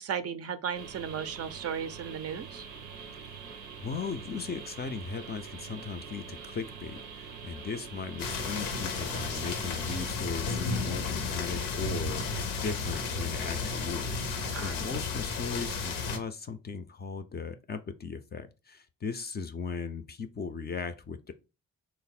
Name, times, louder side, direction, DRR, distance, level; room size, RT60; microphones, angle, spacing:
voice 1, 0.0-2.7 14.5-14.8, right 7 dB, 40° right, 0.4 m, -35 dB
sound 1, 0.7-10.1, right 6 dB, 90° right, 0.6 m, -45 dB
voice 2, 3.8-21.3, left 5 dB, 25° left, 0.4 m, -38 dB
sound 2, 8.2-16.2, left 4 dB, 80° left, 0.6 m, -33 dB
3.2 x 2.0 x 4.1 m
hypercardioid pair, 40°, 39 cm